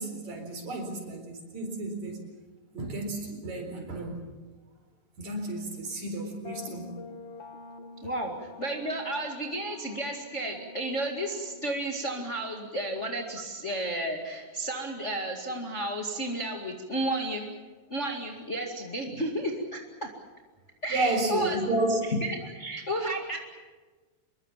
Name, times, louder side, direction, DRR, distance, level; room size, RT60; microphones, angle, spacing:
voice 1, 0.0-2.2 2.7-4.3 5.2-7.0 20.9-22.0, right 2 dB, 55° right, 4 dB, 5.5 m, -31 dB
sound 1, 6.4-14.1, left 3 dB, 50° left, 2.4 m, -48 dB
voice 2, 8.0-17.5 17.9-20.1 20.8-21.6 22.1-23.4, right 1 dB, 25° left, 1 dB, 2.0 m, -32 dB
25.5 x 22.0 x 7.4 m, 1.3 s
omnidirectional pair, 3.9 m